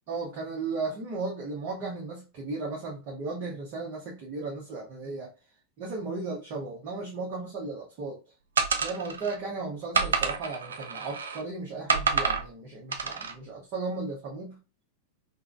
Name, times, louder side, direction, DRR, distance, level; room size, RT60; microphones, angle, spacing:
voice 1, 0.1-5.3 5.8-8.2 8.8-14.6, right 3 dB, 40° right, -3 dB, 0.9 m, -35 dB
sound 1, 8.6-9.4 9.9-11.4 11.9-12.5 12.9-13.3, right 5 dB, 70° right, 0.4 m, -28 dB
3.6 x 2.2 x 2.3 m, 0.30 s
figure-of-eight pair, 90°, 0 cm